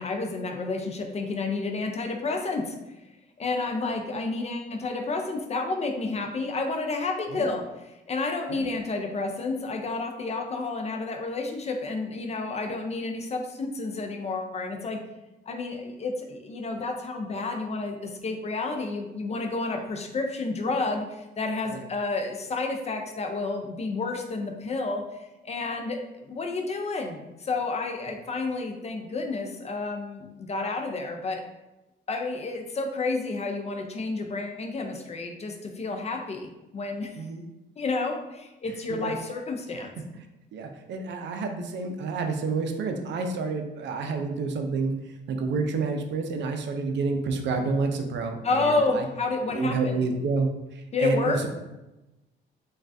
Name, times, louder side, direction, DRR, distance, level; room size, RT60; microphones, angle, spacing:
voice 1, 0.0-2.8 3.4-15.0 15.5-31.4 32.1-37.3 37.8-39.9 48.4-50.0 50.9-51.4, left 3 dB, 35° left, 3 dB, 0.4 m, -30 dB
voice 2, 40.5-44.9 45.3-49.1 49.5-50.5 51.0-51.5, right 4 dB, 65° right, 5 dB, 0.4 m, -29 dB
3.1 x 2.3 x 2.6 m, 0.98 s
cardioid pair, 90°, 20 cm